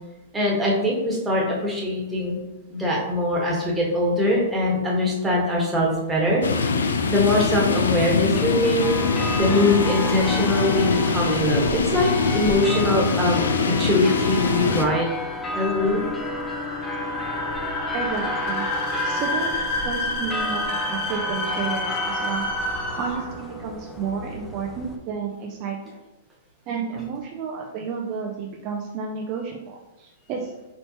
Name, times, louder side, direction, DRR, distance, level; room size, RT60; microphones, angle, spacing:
voice 1, 0.3-2.4 2.7-9.0 9.4-15.1 15.5-16.0, left 1 dB, 10° right, -4 dB, 1.3 m, -22 dB
sound 1, 6.4-14.9, left 4 dB, 85° left, 0.4 m, -23 dB
sound 2, 8.3-25.0, left 1 dB, 10° left, 0.5 m, -32 dB
sound 3, 13.8-23.5, left 2 dB, 35° left, 1.0 m, -30 dB
voice 2, 17.9-18.7 19.0-22.5 23.0-26.0 26.7-30.5, right 6 dB, 40° right, 1 dB, 0.5 m, -31 dB
4.4 x 3.1 x 2.9 m, 1.0 s
hypercardioid pair, 125°, 0 cm